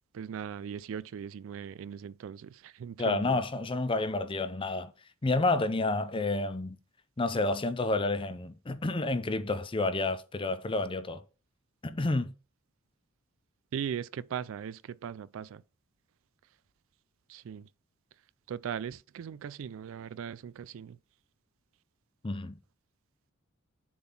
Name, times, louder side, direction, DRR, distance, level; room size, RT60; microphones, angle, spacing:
voice 1, 0.1-3.4 13.7-15.6 17.3-17.7 18.5-21.0, right 8 dB, 65° right, 0.3 m, -39 dB
voice 2, 3.0-4.9 5.2-6.8 7.2-11.2 11.8-12.3 22.2-22.6, left 2 dB, 25° left, 0.5 m, -30 dB
7.2 x 3.8 x 5.9 m
head